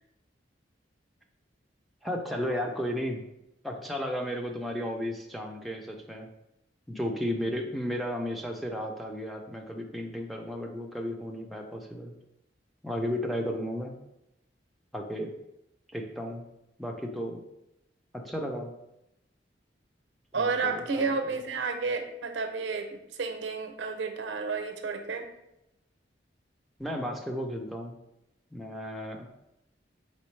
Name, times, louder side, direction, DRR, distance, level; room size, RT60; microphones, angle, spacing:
voice 1, 2.0-3.2 3.6-6.3 6.9-12.1 12.8-14.0 14.9-15.4 15.9-16.5 16.8-17.4 18.1-18.7 20.3-21.1 26.8-28.0 28.5-29.3, equal, ahead, 0 dB, 0.4 m, -34 dB
voice 2, 20.3-25.3, right 4 dB, 90° right, 6 dB, 0.6 m, -31 dB
4.2 x 3.5 x 3.1 m, 0.87 s
head